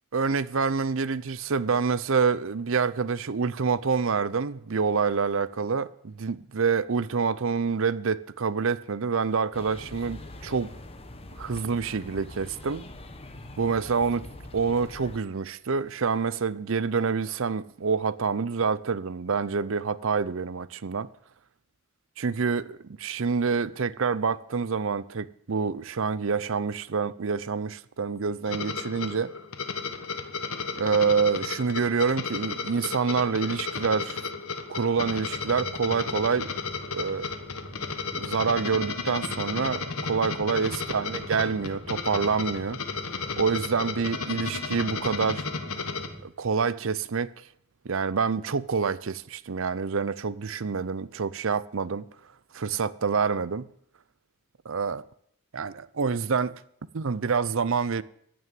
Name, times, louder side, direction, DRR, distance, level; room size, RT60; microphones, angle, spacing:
voice 1, 0.1-10.7 11.4-12.8 13.6-14.2 14.5-21.1 22.2-29.3 30.8-34.2 34.7-36.5 36.9-37.3 38.2-42.8 43.4-45.4 46.2-47.3 47.8-52.1 52.5-53.7 54.7-55.0 55.5-56.5 56.9-58.0, right 5 dB, 60° right, 0.6 m, -27 dB
sound 1, 9.5-15.2, left 1 dB, 25° left, 1.0 m, -43 dB
sound 2, 28.5-46.1, left 5 dB, 75° left, 1.5 m, -34 dB
sound 3, 34.9-46.2, right 1 dB, 25° right, 1.3 m, -45 dB
15.0 x 6.4 x 9.1 m
head